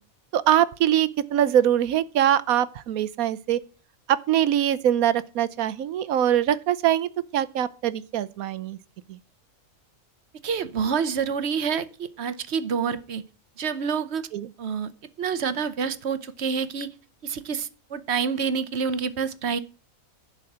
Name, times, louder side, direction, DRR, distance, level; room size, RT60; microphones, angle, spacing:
voice 1, 0.3-3.6 4.1-8.8 9.1-9.2 14.3-14.5, right 11 dB, 85° right, 1.2 m, -23 dB
voice 2, 10.4-13.2 13.6-14.2 14.6-14.9 15.2-16.9 17.2-19.6, right 6 dB, 55° right, 1.0 m, -27 dB
11.5 x 4.8 x 7.9 m
omnidirectional pair, 1.4 m